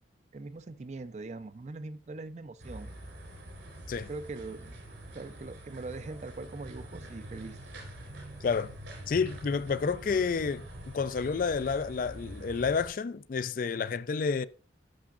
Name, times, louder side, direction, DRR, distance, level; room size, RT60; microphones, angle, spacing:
voice 1, 0.3-2.9 4.1-4.8 5.1-7.6, right 3 dB, 40° right, 0.4 m, -41 dB
sound 1, 2.6-12.9, right 1 dB, 85° right, 3.8 m, -45 dB
voice 2, 8.4-8.7 9.1-10.6 10.9-14.5, left 5 dB, 50° left, 0.3 m, -29 dB
11.5 x 6.2 x 2.4 m
head